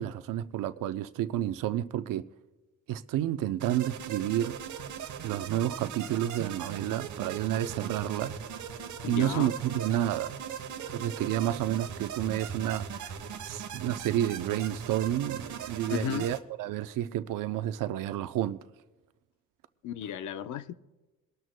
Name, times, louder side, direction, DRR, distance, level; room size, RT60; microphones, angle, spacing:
voice 1, 0.0-2.3 2.9-4.6 5.2-8.3 9.1-10.4 10.9-13.2 13.4-18.6, right 12 dB, 85° right, 0.6 m, -30 dB
sound 1, 3.6-16.4, right 7 dB, 65° right, 1.1 m, -39 dB
voice 2, 9.0-9.5 15.9-16.3 19.8-20.7, left 9 dB, 70° left, 0.7 m, -34 dB
23.5 x 12.5 x 2.2 m
cardioid pair, 130°, 32 cm